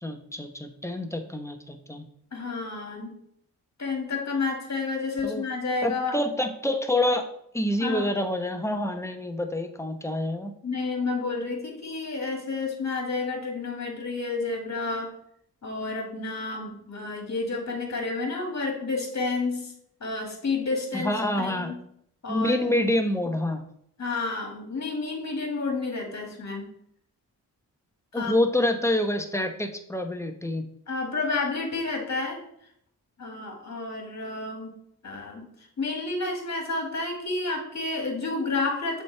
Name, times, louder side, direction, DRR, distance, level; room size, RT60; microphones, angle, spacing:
voice 1, 0.0-2.1 5.2-5.4 5.8-7.2 7.5-10.5 20.9-21.7 22.3-23.6 28.1-30.6, left 1 dB, 5° left, 6 dB, 0.9 m, -27 dB
voice 2, 2.3-3.1 3.8-6.2 7.8-8.1 10.6-15.1 15.6-19.7 20.0-21.7 22.2-22.6 24.0-26.7 28.1-28.3 30.9-32.4 33.2-34.8 35.0-35.5 35.8-39.0, left 3 dB, 45° left, 2 dB, 2.1 m, -30 dB
6.9 x 4.4 x 3.4 m, 0.70 s
cardioid pair, 55°, 37 cm